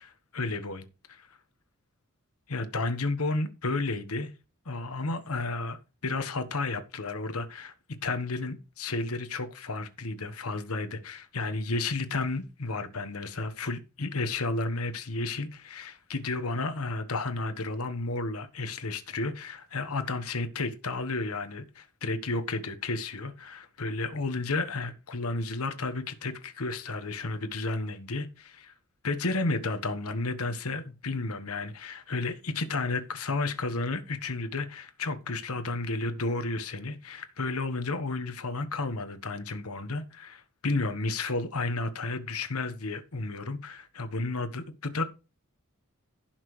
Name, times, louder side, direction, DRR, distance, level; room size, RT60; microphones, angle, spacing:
voice 1, 0.0-1.3 2.5-4.3 4.6-7.7 8.0-28.7 29.0-45.0, left 3 dB, 75° left, 1.3 m, -32 dB
16.0 x 5.9 x 3.2 m
head